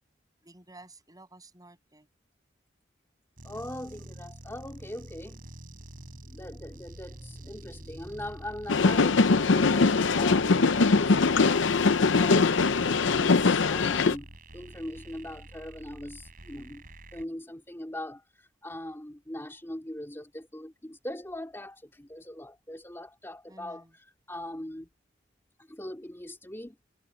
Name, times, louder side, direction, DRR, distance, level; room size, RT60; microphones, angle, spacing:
voice 1, 0.4-2.1 23.5-23.9, right 2 dB, 20° right, 7.0 m, -52 dB
voice 2, 3.4-11.6 12.0-14.3 14.5-16.8 17.1-24.9 25.7-26.8, left 1 dB, 15° left, 2.8 m, -41 dB
sound 1, 3.4-17.2, right 1 dB, 50° right, 4.0 m, -47 dB
sound 2, 8.7-14.2, left 4 dB, 75° left, 0.7 m, -22 dB
head